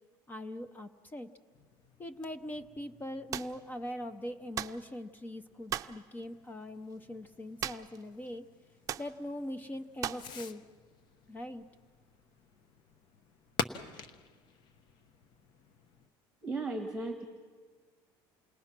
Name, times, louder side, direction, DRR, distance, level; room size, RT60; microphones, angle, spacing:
voice 1, 0.3-1.3 2.0-8.5 9.0-10.6 11.3-11.6, left 1 dB, 20° left, 11 dB, 0.7 m, -41 dB
Fireworks, 1.5-16.1, left 6 dB, 50° left, 0.9 m, -47 dB
sound 1, 3.3-3.6 4.6-4.8 5.7-6.0 7.6-8.0 8.3-8.4 8.9-9.1 10.0-10.3, right 10 dB, 35° right, 0.6 m, -37 dB
voice 2, 16.4-17.2, right 3 dB, 5° right, 4 dB, 1.6 m, -35 dB
28.5 x 20.0 x 6.0 m, 1.5 s
cardioid pair, 140°, 10 cm